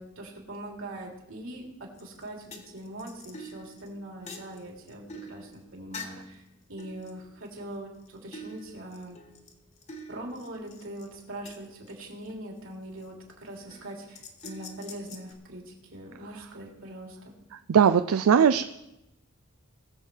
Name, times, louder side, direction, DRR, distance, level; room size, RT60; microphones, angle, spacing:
voice 1, 0.0-6.4 6.7-9.2 10.1-17.3, right 1 dB, 65° right, -1 dB, 3.3 m, -42 dB
sound 1, 2.0-2.2 2.5-6.4 6.8-8.1 8.3-12.3 13.0-13.3 13.7-15.3, left 1 dB, 35° left, 1.4 m, -46 dB
voice 2, 17.5-18.6, right 7 dB, 90° right, 10 dB, 0.4 m, -20 dB
20.5 x 7.5 x 4.6 m, 0.90 s
head